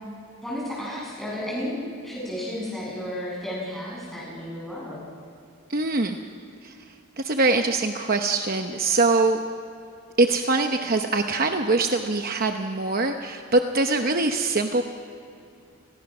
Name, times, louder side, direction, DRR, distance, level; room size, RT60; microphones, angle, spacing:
voice 1, 0.4-5.0, left 1 dB, ahead, -5 dB, 7.3 m, -33 dB
voice 2, 5.7-6.2 6.6-6.7 7.2-9.4 10.2-14.8, right 3 dB, 40° right, 5 dB, 0.9 m, -23 dB
30.0 x 21.0 x 6.1 m, 2.6 s
head